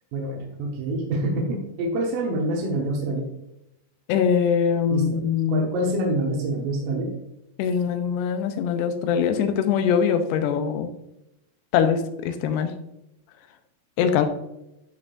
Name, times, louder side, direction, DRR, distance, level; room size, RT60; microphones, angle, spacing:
voice 1, 0.1-3.3 4.9-5.2 5.5-7.1, right 1 dB, 70° right, 0 dB, 2.2 m, -26 dB
voice 2, 4.1-5.7 7.6-10.9 11.7-12.7 14.0-14.3, left 7 dB, 85° left, 8 dB, 2.7 m, -22 dB
11.0 x 4.3 x 2.5 m, 0.86 s
omnidirectional pair, 4.8 m